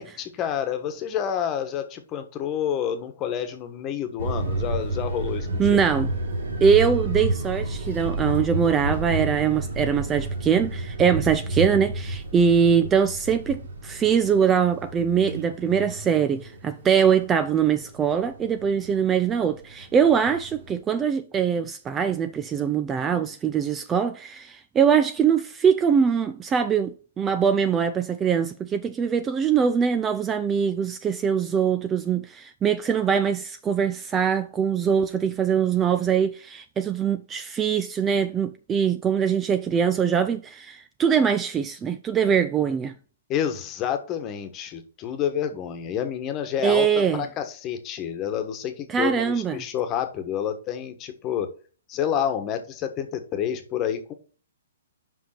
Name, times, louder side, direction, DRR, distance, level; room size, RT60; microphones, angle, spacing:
voice 1, 0.0-5.8 43.3-51.5 51.9-54.1, left 9 dB, 25° left, 1.3 m, -29 dB
sound 1, 4.2-20.8, right 1 dB, 75° right, 2.8 m, -31 dB
voice 2, 5.6-6.1 6.6-42.9 46.6-47.2 48.9-49.6, right 7 dB, 15° right, 0.4 m, -22 dB
5.6 x 5.3 x 5.8 m
hypercardioid pair, 140°, 0 cm